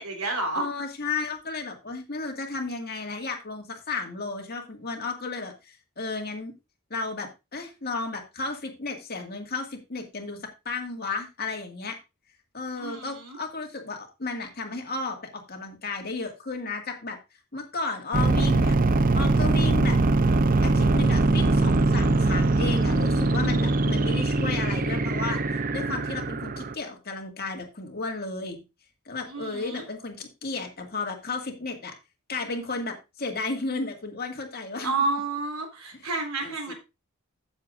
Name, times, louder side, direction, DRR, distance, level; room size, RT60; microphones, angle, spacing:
voice 1, 0.0-0.7 12.7-13.4 29.3-29.8 34.8-36.7, right 3 dB, 90° right, 3 dB, 3.2 m, -30 dB
voice 2, 0.5-6.5 6.9-12.0 12.5-17.2 17.5-18.8 19.1-20.0 20.6-25.4 25.7-28.6 29.1-31.9 32.3-34.9 35.9-36.1 36.4-36.7, left 3 dB, 45° left, 3 dB, 2.1 m, -33 dB
sound 1, 18.1-26.7, right 2 dB, 40° right, 0.6 m, -22 dB
13.5 x 7.2 x 2.6 m, 0.26 s
head